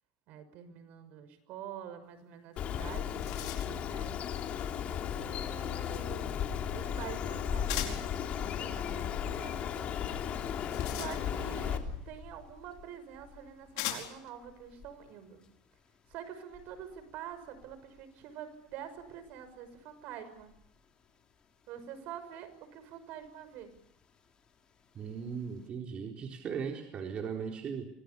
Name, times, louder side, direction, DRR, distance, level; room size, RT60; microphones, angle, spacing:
voice 1, 0.3-4.2 5.1-6.3 6.7-8.1 8.3-9.6 10.9-11.8 12.1-15.4 16.1-20.5 21.7-23.7, right 9 dB, 65° right, 12 dB, 6.0 m, -46 dB
sound 1, 2.5-2.6 2.9-3.9 7.7-8.1 10.4-11.6 12.7-12.8 13.8-14.3, left 13 dB, 85° left, 4.8 m, -39 dB
Bird, 2.6-11.8, left 9 dB, 45° left, 3.5 m, -36 dB
sound 2, 6.1-21.4 22.0-22.8 23.2-24.6 24.8-25.6, left 6 dB, 30° left, 5.5 m, -44 dB
voice 2, 24.9-27.9, right 6 dB, 40° right, 2 dB, 4.1 m, -38 dB
29.5 x 26.0 x 7.1 m, 0.74 s
supercardioid pair, 125°, 3 cm